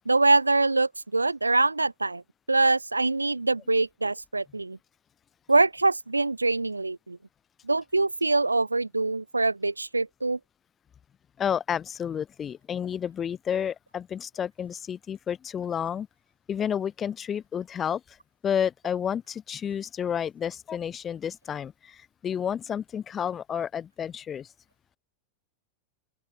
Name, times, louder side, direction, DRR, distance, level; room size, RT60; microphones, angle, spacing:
voice 1, 0.1-2.2 2.5-4.8 5.5-7.2 7.6-10.4, right 3 dB, 80° right, 0.8 m, -24 dB
voice 2, 11.4-16.1 16.5-18.2 18.4-24.5, left 8 dB, 25° left, 4.6 m, -31 dB
open air
figure-of-eight pair, 90°, 0 cm